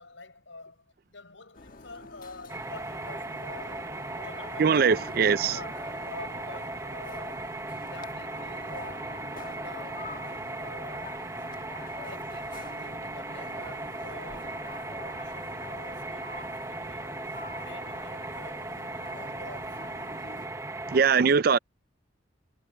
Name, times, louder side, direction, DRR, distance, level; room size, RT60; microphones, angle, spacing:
voice 1, 0.0-4.0 4.2-4.9 5.4-7.6 7.9-9.1 9.5-11.2 11.9-17.1 17.6-19.8, left 3 dB, 70° left, 5.2 m, -48 dB
sound 1, 1.5-20.5, left 3 dB, 45° left, 1.4 m, -46 dB
sound 2, 2.5-21.0, right 2 dB, 15° right, 0.9 m, -37 dB
voice 2, 4.6-5.6 20.9-21.6, right 6 dB, 50° right, 0.4 m, -21 dB
head